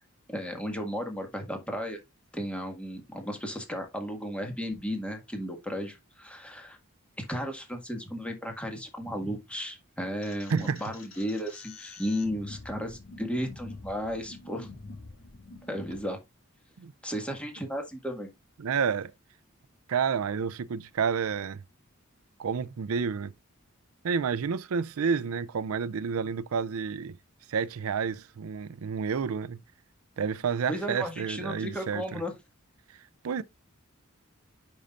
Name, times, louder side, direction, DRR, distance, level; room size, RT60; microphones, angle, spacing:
voice 1, 0.3-2.0 2.3-6.8 7.2-14.7 15.7-16.2 17.0-18.3 30.7-32.3, equal, 5° left, 1.8 m, -34 dB
sound 1, 10.2-16.0, left 3 dB, 65° left, 2.5 m, -46 dB
voice 2, 10.5-10.9 16.8-16.9 18.6-19.1 19.9-21.6 22.4-23.3 24.0-27.2 27.5-29.6 30.2-32.2 33.2-33.4, right 6 dB, 80° right, 0.4 m, -30 dB
10.0 x 5.5 x 2.4 m
head